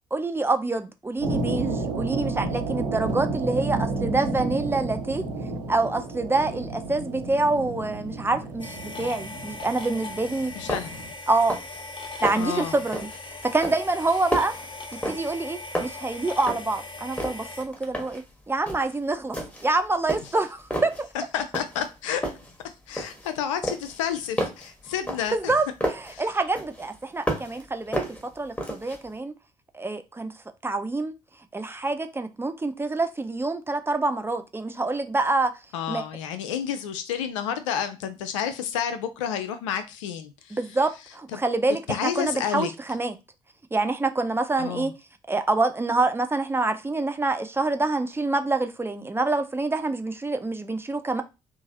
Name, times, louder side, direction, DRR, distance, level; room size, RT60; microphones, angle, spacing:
voice 1, 0.1-5.2 5.7-10.7 11.3-11.6 12.2-13.1 13.4-14.6 15.1-19.4 19.6-21.1 25.3-29.3 29.7-30.3 30.6-31.1 31.5-35.5 35.9-36.1 40.5-43.1 43.7-44.9 45.3-51.2, right 3 dB, 15° right, 0.4 m, -26 dB
sound 1, 1.2-11.1, right 3 dB, 80° right, 1.1 m, -31 dB
sound 2, 8.6-17.6, left 3 dB, 30° left, 0.7 m, -39 dB
sound 3, 10.2-10.3 10.7-11.1 11.4-11.8 12.1-12.6 12.9-13.2 13.6-15.5 15.7-16.8 17.1-18.3 18.7-18.9 19.3-19.7 20.1-21.0 21.5-21.9 22.2-23.3 23.6-26.1 26.5-27.6 27.9-29.0, equal, 5° left, 1.1 m, -32 dB
voice 2, 10.5-10.9 12.4-12.8 21.1-22.3 22.9-25.5 26.1-26.3 35.7-40.6 41.3-41.4 41.9-42.7 44.6-44.9, left 9 dB, 75° left, 0.4 m, -30 dB
2.8 x 2.4 x 2.7 m
figure-of-eight pair, 45°, 16 cm